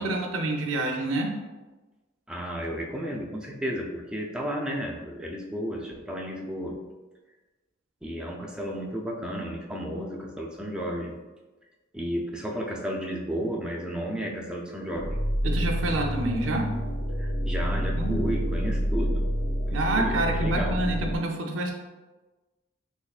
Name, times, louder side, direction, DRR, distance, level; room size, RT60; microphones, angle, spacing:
voice 1, 0.0-1.3 15.4-16.7 17.7-18.2 19.7-21.7, right 2 dB, 75° right, 2 dB, 0.5 m, -28 dB
voice 2, 2.3-6.8 8.0-11.2 11.9-15.2 17.2-19.2 19.7-20.8, equal, 5° right, -1 dB, 0.3 m, -33 dB
sound 1, 15.0-21.2, equal, 65° left, 0.8 m, -28 dB
3.5 x 3.1 x 2.4 m, 1.2 s
head